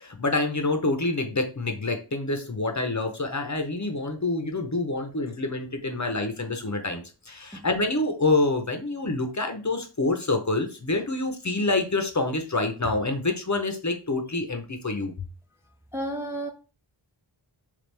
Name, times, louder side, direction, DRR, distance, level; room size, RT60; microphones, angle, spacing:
voice 1, 0.0-15.1, left 2 dB, 35° left, 0.8 m, -27 dB
voice 2, 15.9-16.5, right 1 dB, 5° right, 0.4 m, -31 dB
3.4 x 3.4 x 3.3 m
wide cardioid pair, 40°, 48 cm